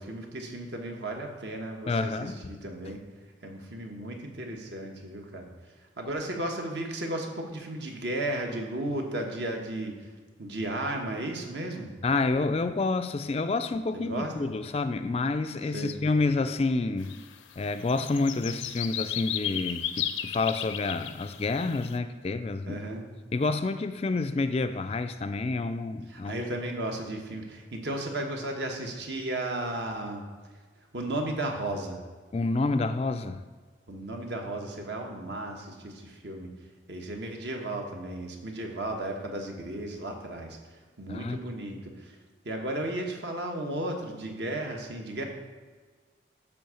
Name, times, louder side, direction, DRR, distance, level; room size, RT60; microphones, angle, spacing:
voice 1, 0.0-3.0 3.4-5.5 6.0-10.1 10.4-11.9 13.9-14.5 15.7-16.0 22.7-23.1 26.1-30.2 30.9-32.0 33.9-36.5 36.9-42.2 42.4-45.2, right 1 dB, 60° right, 2 dB, 1.2 m, -34 dB
voice 2, 1.9-2.5 12.0-17.1 17.6-22.8 23.3-26.4 32.3-33.4 41.1-41.4, left 3 dB, 30° left, 9 dB, 0.3 m, -28 dB
sound 1, 17.0-17.2 17.5-22.0, left 10 dB, 80° left, 0.6 m, -35 dB
10.0 x 3.6 x 6.9 m, 1.4 s
head